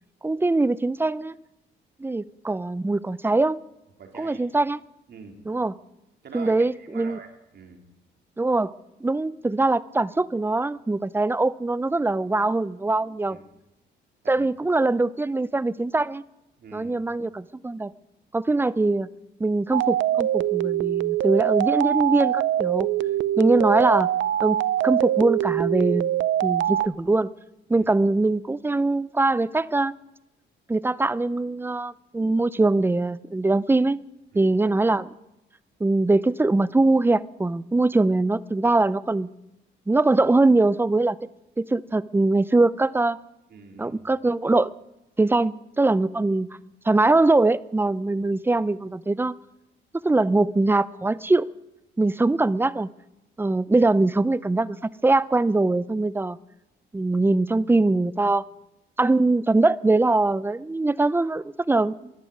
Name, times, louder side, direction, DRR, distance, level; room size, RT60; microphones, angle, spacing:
voice 1, 0.2-1.3 2.0-3.6 4.2-4.8 5.5-5.7 6.3-7.2 8.4-8.7 9.0-13.4 14.3-16.2 16.7-17.9 18.3-19.1 19.4-22.9 23.4-24.1 24.4-24.6 24.8-26.1 26.4-27.3 27.7-29.9 30.7-34.0 34.4-35.1 35.8-39.3 39.9-41.2 41.6-43.2 43.8-44.7 45.2-46.5 46.9-49.4 50.0-51.5 52.0-52.9 53.4-56.4 56.9-58.5 59.0-62.1, right 2 dB, 10° right, 19 dB, 0.5 m, -22 dB
voice 2, 4.0-4.4 5.1-5.4 6.2-7.8 13.3-13.4 14.2-14.5 16.6-16.9 27.7-27.9 34.3-34.5 43.5-44.0, right 5 dB, 55° right, 3 dB, 3.3 m, -44 dB
sound 1, 19.7-26.9, right 12 dB, 75° right, 0.5 m, -23 dB
12.5 x 11.5 x 9.5 m, 0.92 s
cardioid pair, 90°, 20 cm